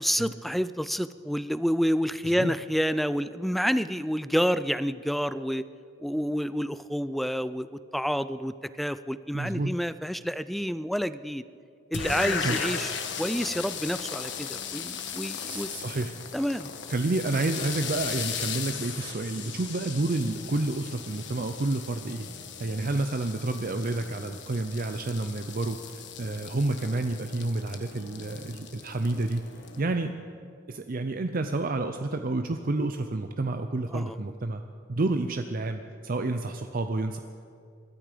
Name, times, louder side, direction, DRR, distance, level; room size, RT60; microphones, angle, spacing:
voice 1, 0.0-5.6 6.0-11.4 11.9-15.7 16.3-16.7 33.9-34.2, equal, ahead, 15 dB, 0.3 m, -29 dB
voice 2, 9.3-9.8 12.4-12.6 15.5-16.1 16.9-22.3 22.6-29.4 29.8-30.1 30.7-34.6 34.9-37.2, right 2 dB, 50° right, 7 dB, 0.6 m, -29 dB
sound 1, 11.9-29.8, left 6 dB, 70° left, 1.3 m, -37 dB
22.0 x 12.5 x 5.1 m, 2.3 s
head